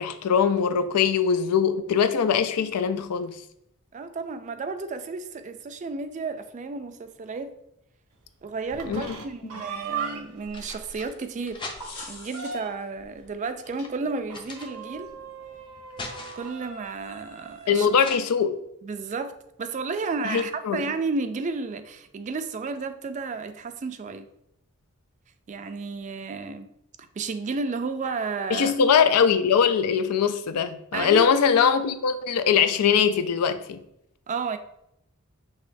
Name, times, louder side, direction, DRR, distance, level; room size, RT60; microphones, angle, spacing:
voice 1, 0.0-3.4 8.9-9.1 17.7-18.6 20.2-20.8 28.5-33.8, left 7 dB, 85° left, 0.4 m, -22 dB
voice 2, 3.9-7.5 8.4-11.7 12.0-15.1 16.4-17.9 18.8-24.3 25.5-26.7 27.0-28.7 30.9-31.4 34.3-34.6, right 4 dB, 35° right, 0.3 m, -32 dB
sound 1, 8.4-9.2 10.1-12.2 13.0-15.2 15.6-16.6 18.0-18.2, left 2 dB, 20° left, 0.5 m, -42 dB
sound 2, 8.7-10.5 10.9-11.0 11.3-11.4 11.8-13.0 14.3-18.2, right 6 dB, 75° right, 0.7 m, -38 dB
sound 3, 11.5-12.8 13.8-13.9 15.0-15.1 17.0-17.6, left 2 dB, 70° left, 1.7 m, -43 dB
6.3 x 3.0 x 2.6 m
head